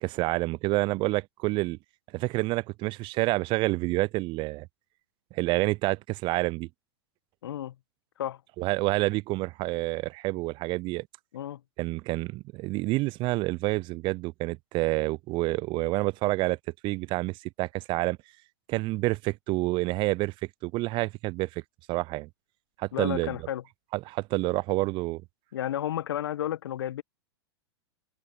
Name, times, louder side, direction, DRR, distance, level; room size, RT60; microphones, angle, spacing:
voice 1, 0.0-1.8 2.1-4.7 5.3-6.7 8.6-11.1 11.8-16.6 16.8-18.2 18.7-20.3 20.6-21.5 21.9-22.3 22.8-23.4 24.1-25.2, right 21 dB, 35° right, 0.6 m, -28 dB
voice 2, 7.4-7.8 8.2-8.4 11.3-11.6 22.9-23.6 25.5-27.0, left 11 dB, 65° left, 1.7 m, -32 dB
figure-of-eight pair, 95°, 14 cm